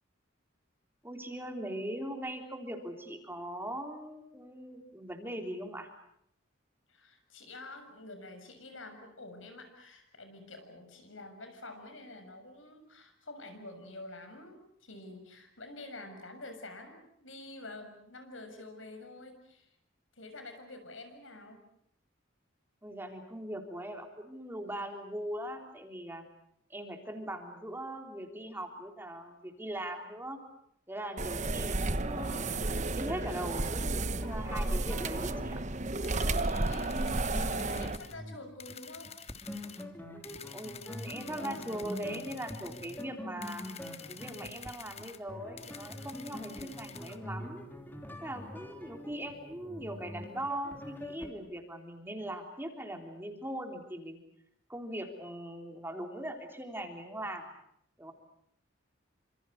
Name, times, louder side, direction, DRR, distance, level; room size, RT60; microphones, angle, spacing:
voice 1, 1.0-5.9 22.8-26.2 26.7-30.4 30.9-32.4 32.9-35.6 37.3-37.9 40.5-43.6 44.1-47.6 48.2-54.2 54.7-57.5 58.0-58.1, right 1 dB, 10° right, 4 dB, 3.5 m, -40 dB
voice 2, 6.9-19.7 20.2-21.6 36.6-39.1, left 2 dB, 85° left, 7 dB, 6.8 m, -48 dB
sound 1, 31.2-38.0, right 2 dB, 40° right, 1.1 m, -32 dB
sound 2, 32.1-51.3, left 1 dB, 10° left, 3.3 m, -45 dB
sound 3, 36.0-38.2 38.6-39.8 40.2-43.0 43.4-45.2 45.6-47.2, left 8 dB, 30° left, 1.3 m, -50 dB
28.0 x 26.5 x 6.5 m, 0.72 s
head